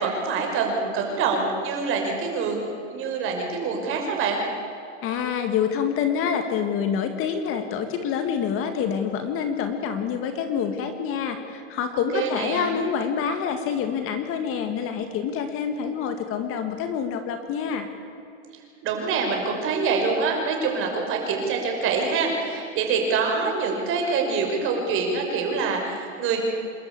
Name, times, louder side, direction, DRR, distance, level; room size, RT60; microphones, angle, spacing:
voice 1, 0.0-4.4 11.9-12.7 18.8-26.4, right 4 dB, 35° right, 2 dB, 5.7 m, -25 dB
voice 2, 5.0-17.9, left 7 dB, 35° left, 7 dB, 2.0 m, -27 dB
27.0 x 13.0 x 8.5 m, 2.7 s
supercardioid pair, 135°, 37 cm